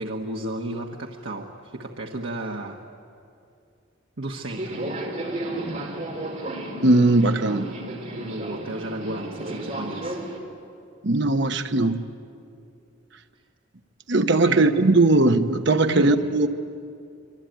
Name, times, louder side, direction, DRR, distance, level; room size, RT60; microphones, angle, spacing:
voice 1, 0.0-2.8 4.2-4.9 8.1-10.2 14.4-14.7 15.9-16.1, right 1 dB, 75° right, 0 dB, 1.5 m, -33 dB
Subway metro underground, 4.5-10.4, right 1 dB, 40° right, 3.9 m, -33 dB
voice 2, 6.8-7.8 11.0-12.0 14.1-16.5, right 2 dB, 60° right, 8 dB, 1.1 m, -19 dB
25.5 x 24.5 x 9.3 m, 2.5 s
head